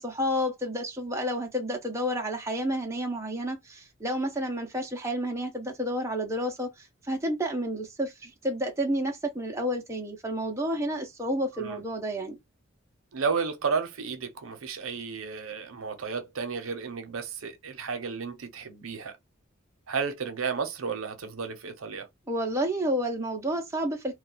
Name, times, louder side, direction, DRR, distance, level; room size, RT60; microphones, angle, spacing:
voice 1, 0.0-12.4 22.3-24.1, equal, 15° right, 0.6 m, -30 dB
voice 2, 13.1-19.1 19.9-22.1, right 5 dB, 85° right, 0.7 m, -32 dB
2.3 x 2.3 x 3.9 m
head